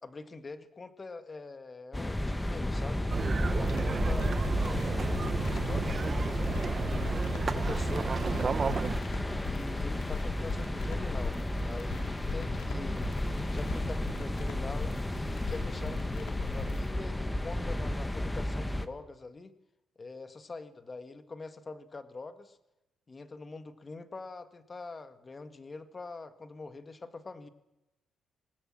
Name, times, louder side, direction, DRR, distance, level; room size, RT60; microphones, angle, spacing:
voice 1, 0.0-3.0 3.5-6.3 6.7-8.8 9.4-11.4 11.6-19.5 20.0-22.6 23.1-27.5, left 3 dB, 30° left, 10 dB, 1.7 m, -44 dB
sound 1, 1.9-18.9, left 1 dB, 10° left, 1.3 m, -33 dB
sound 2, 3.1-9.0, right 5 dB, 40° right, 1.0 m, -32 dB
sound 3, 3.6-16.9, left 7 dB, 80° left, 3.2 m, -42 dB
25.5 x 18.5 x 7.5 m, 0.95 s
cardioid pair, 90°, 0 cm